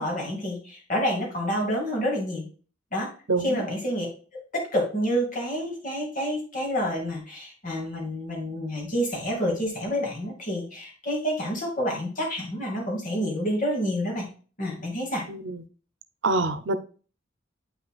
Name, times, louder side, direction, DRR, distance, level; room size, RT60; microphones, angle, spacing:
voice 1, 0.0-2.5 2.9-3.1 3.4-4.1 4.3-14.3 14.6-15.2, equal, 45° left, 0 dB, 2.5 m, -28 dB
voice 2, 3.3-3.6 15.3-15.6 16.2-16.8, right 3 dB, 75° right, 12 dB, 0.7 m, -25 dB
8.7 x 5.6 x 2.4 m, 0.38 s
head